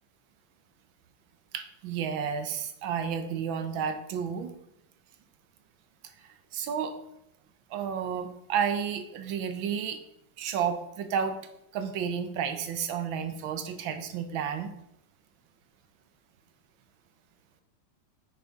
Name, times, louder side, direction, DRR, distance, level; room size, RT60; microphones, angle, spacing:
voice 1, 1.5-4.5 6.2-6.9 7.7-10.0 10.4-11.4 11.7-14.7, right 7 dB, 80° right, 8 dB, 1.5 m, -31 dB
6.5 x 4.5 x 4.6 m, 0.81 s
omnidirectional pair, 2.2 m